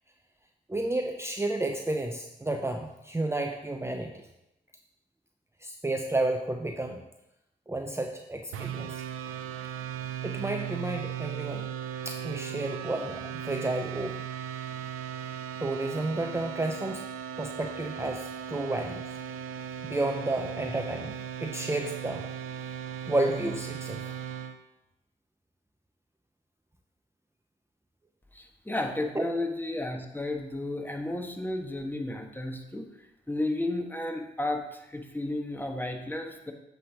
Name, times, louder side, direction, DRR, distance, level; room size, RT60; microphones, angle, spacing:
voice 1, 0.7-4.2 5.6-7.0 7.7-9.0 10.2-11.6 12.1-14.2 15.6-17.1 17.4-19.0 19.8-22.3 23.1-24.0 29.1-29.3, right 2 dB, 10° right, 3 dB, 0.7 m, -31 dB
sound 1, 8.5-24.6, right 9 dB, 85° right, 0.5 m, -37 dB
voice 2, 28.3-32.9 33.3-36.5, left 1 dB, 10° left, 3 dB, 1.4 m, -33 dB
8.4 x 3.4 x 6.2 m, 0.89 s
hypercardioid pair, 40°, 21 cm